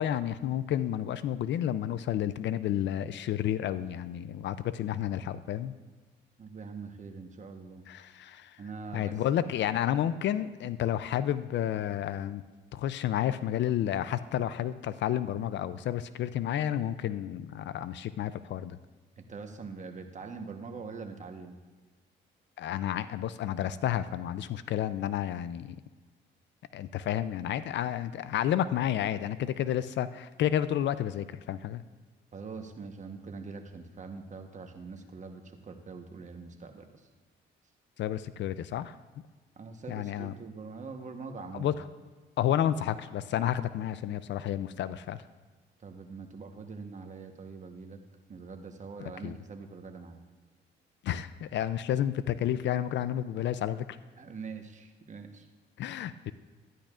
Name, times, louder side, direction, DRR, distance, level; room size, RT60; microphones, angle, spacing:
voice 1, 0.0-5.7 7.9-8.6 8.9-12.4 12.7-18.8 22.6-25.8 26.7-31.8 38.0-39.0 39.9-40.3 41.5-41.7 42.4-45.2 49.0-49.3 51.0-53.9 55.8-56.3, left 11 dB, 65° left, 14 dB, 0.4 m, -31 dB
voice 2, 6.4-7.8 8.6-9.2 19.2-21.6 32.3-37.1 39.6-41.7 45.8-48.0 48.3-50.2 54.2-55.5, right 4 dB, 40° right, 5 dB, 1.1 m, -43 dB
12.5 x 10.0 x 2.4 m, 1.4 s
cardioid pair, 90°, 20 cm